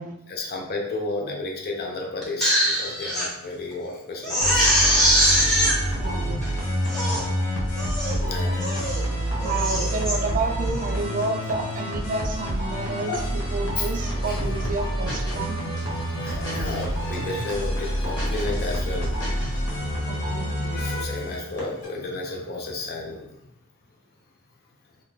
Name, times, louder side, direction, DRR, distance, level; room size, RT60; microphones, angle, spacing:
voice 1, 0.3-5.0 8.2-8.7 13.1-13.3 13.8-13.9 14.3-14.4 15.6-15.7 16.0-19.1 20.7-23.3, left 3 dB, 50° left, 0 dB, 0.6 m, -32 dB
Crying sobbing, 2.2-3.3 3.7-3.8 4.2-5.8 6.4-6.5 6.8-7.3 7.8-8.2 8.6-9.0 9.4-10.2 10.6-10.9, equal, ahead, 0.8 m, -22 dB
sound 1, 4.4-21.9, equal, 85° left, 1.1 m, -28 dB
voice 2, 5.7-6.6 8.5-8.9 9.4-13.2 13.5-15.7 20.1-20.9, right 3 dB, 40° right, 3 dB, 0.4 m, -30 dB
sound 2, 14.4-15.4 15.7-16.8 17.1-17.5 17.8-19.6, equal, 20° left, 1.2 m, -36 dB
3.2 x 2.0 x 3.5 m, 0.82 s
head